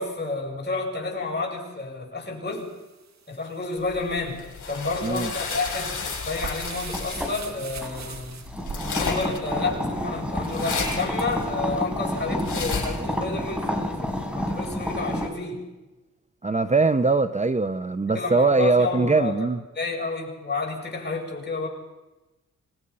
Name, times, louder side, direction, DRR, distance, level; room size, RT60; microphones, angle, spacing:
voice 1, 0.0-2.7 3.3-8.4 9.0-15.6 18.1-19.4 19.7-21.7, left 3 dB, 35° left, -1 dB, 7.5 m, -30 dB
sound 1, 2.5-9.4, right 5 dB, 60° right, 2.2 m, -42 dB
sound 2, 3.8-13.0, left 4 dB, 65° left, 7.8 m, -33 dB
sound 3, 6.9-15.3, equal, 5° right, 4.6 m, -30 dB
voice 2, 16.4-19.6, right 3 dB, 20° right, 11 dB, 0.8 m, -21 dB
26.0 x 20.5 x 5.6 m, 1.1 s
cardioid pair, 70°, 31 cm